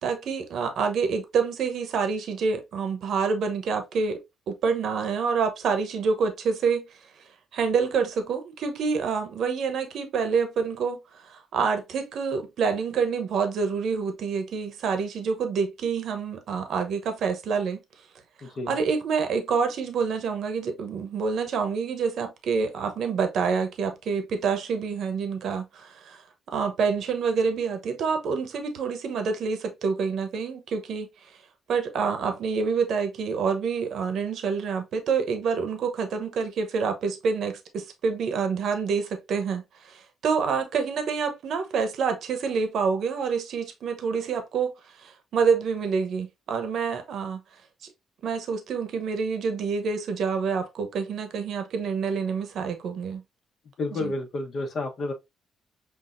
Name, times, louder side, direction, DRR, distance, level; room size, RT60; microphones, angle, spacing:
voice 1, 0.0-6.8 7.5-17.8 18.7-26.2 26.5-31.1 31.7-47.4 48.2-53.2 54.0-54.1, right 5 dB, 70° right, 0.8 m, -27 dB
voice 2, 18.4-18.7 53.8-55.1, left 2 dB, 55° left, 1.1 m, -30 dB
5.8 x 2.3 x 2.5 m
cardioid pair, 90°, 0 cm